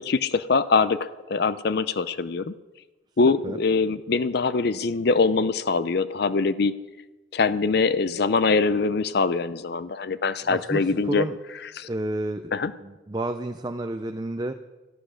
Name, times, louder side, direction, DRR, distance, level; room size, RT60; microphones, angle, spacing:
voice 1, 0.0-2.5 3.2-6.7 7.3-11.3 11.8-11.9 12.5-12.7, left 4 dB, 50° left, 15 dB, 0.5 m, -23 dB
voice 2, 10.4-11.4 11.8-12.5 12.8-14.5, right 1 dB, 20° right, 7 dB, 0.5 m, -30 dB
14.0 x 12.0 x 6.4 m, 1.1 s
head